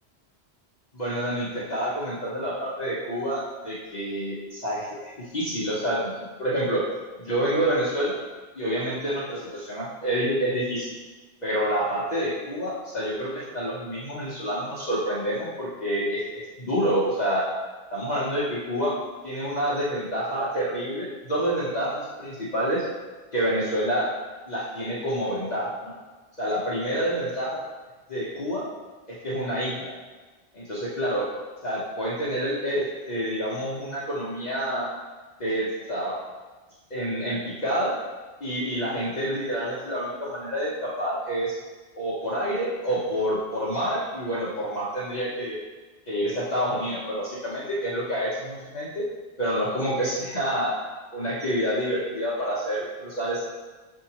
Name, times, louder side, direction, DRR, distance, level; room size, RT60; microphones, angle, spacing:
voice 1, 0.9-6.8 7.2-8.2 8.5-10.9 11.4-17.5 17.9-19.0 19.2-22.8 23.3-24.1 24.5-25.9 26.4-27.6 28.1-28.6 29.1-29.9 30.5-31.3 31.6-34.9 35.4-36.2 36.9-38.0 38.4-41.6 42.0-45.6 46.1-49.0 49.4-50.8 51.1-53.5, equal, 45° left, -8 dB, 0.9 m, -28 dB
6.7 x 2.7 x 2.9 m, 1.3 s
omnidirectional pair, 1.1 m